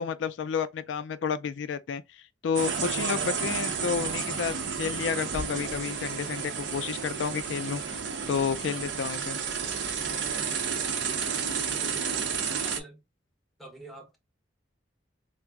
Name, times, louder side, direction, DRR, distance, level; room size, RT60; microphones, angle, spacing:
voice 1, 0.0-8.0 8.3-9.4, left 6 dB, 80° left, 0.3 m, -31 dB
sound 1, 2.5-12.8, right 6 dB, 70° right, 0.7 m, -31 dB
voice 2, 12.5-13.0 13.6-14.2, right 2 dB, ahead, 1.0 m, -46 dB
3.7 x 2.0 x 3.4 m
head